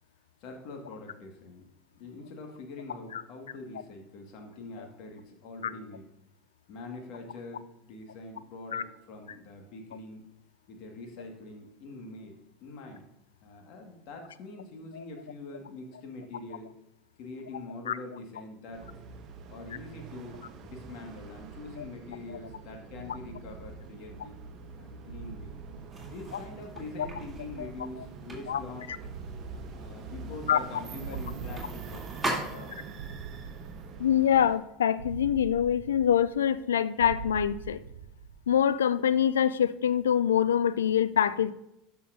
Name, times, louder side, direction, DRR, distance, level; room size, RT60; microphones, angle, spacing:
voice 1, 0.4-1.6 1.9-6.1 6.7-10.2 10.7-13.0 13.4-16.7 17.2-18.9 19.5-20.4 20.6-24.3 24.8-25.6 26.0-28.9 29.5-32.0 32.5-32.8, left 2 dB, 55° left, 3 dB, 1.8 m, -44 dB
sound 1, 18.7-34.6, right 5 dB, 45° right, 0.9 m, -45 dB
sound 2, 22.2-22.4 23.1-24.6 25.1-26.7 27.0-28.6 29.0-30.7 31.0-32.6 33.0-34.6 35.0-36.6 37.0-38.6, right 6 dB, 80° right, 0.5 m, -45 dB
sound 3, 25.9-33.0, right 1 dB, 15° right, 2.8 m, -41 dB
voice 2, 34.0-37.8 38.5-41.5, left 9 dB, 80° left, 16 dB, 0.3 m, -25 dB
12.5 x 5.7 x 2.6 m, 0.85 s
hypercardioid pair, 80°, 0 cm